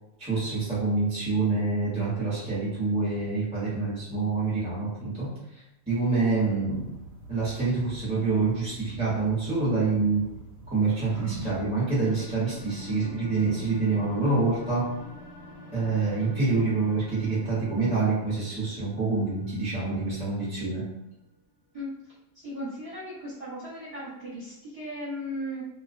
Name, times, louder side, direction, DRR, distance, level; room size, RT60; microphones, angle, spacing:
voice 1, 0.2-5.3 5.9-6.9 7.3-10.3 10.7-14.9 15.7-20.8, right 3 dB, 5° right, -9 dB, 0.7 m, -26 dB
sound 1, 6.7-11.7, right 2 dB, 80° right, 1.0 m, -44 dB
sound 2, 11.9-21.3, equal, 65° left, 0.8 m, -47 dB
voice 2, 22.4-25.6, equal, 30° right, -11 dB, 1.0 m, -36 dB
2.4 x 2.2 x 2.5 m, 0.93 s
omnidirectional pair, 1.5 m